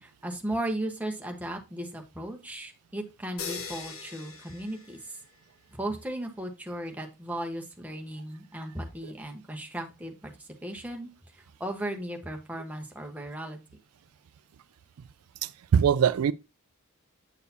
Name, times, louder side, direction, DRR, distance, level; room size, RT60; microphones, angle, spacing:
voice 1, 0.0-5.2 5.7-11.1 11.6-13.6, right 1 dB, 5° right, 1.0 m, -36 dB
sound 1, 3.4-5.5, left 5 dB, 70° left, 1.3 m, -41 dB
voice 2, 15.4-16.3, right 7 dB, 85° right, 0.4 m, -23 dB
8.2 x 6.5 x 2.7 m
head